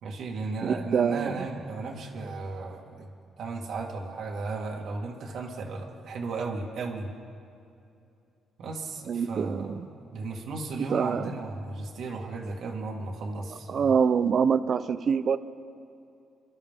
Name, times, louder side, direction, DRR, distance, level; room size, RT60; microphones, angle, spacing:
voice 1, 0.0-3.1 3.4-7.1 8.6-13.9, right 3 dB, 70° right, 0 dB, 1.9 m, -35 dB
voice 2, 0.6-1.3 9.1-9.9 10.9-11.3 13.7-15.4, right 6 dB, 50° right, 14 dB, 0.6 m, -25 dB
28.0 x 12.0 x 3.7 m, 2.6 s
cardioid pair, 90°, 0 cm